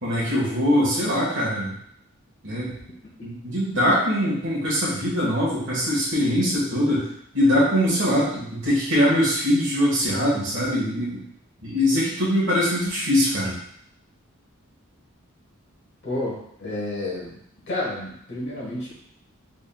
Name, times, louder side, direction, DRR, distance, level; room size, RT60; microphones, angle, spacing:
voice 1, 0.0-1.7 2.4-2.8 3.2-7.1 7.3-11.2 11.6-13.6, equal, 60° right, -7 dB, 1.3 m, -22 dB
voice 2, 16.0-17.4 17.7-18.9, left 1 dB, 55° left, -5 dB, 1.4 m, -30 dB
4.0 x 3.6 x 2.3 m, 0.71 s
head